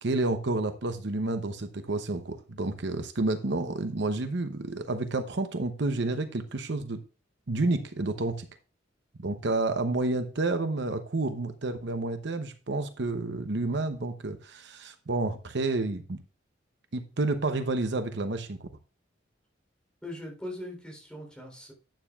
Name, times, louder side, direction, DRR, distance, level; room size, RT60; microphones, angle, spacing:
voice 1, 0.0-7.0 7.5-8.5 9.2-16.2 16.9-18.7, right 2 dB, 65° right, 0.8 m, -30 dB
voice 2, 20.0-21.7, left 1 dB, 5° left, 3.7 m, -40 dB
11.5 x 9.0 x 2.4 m
head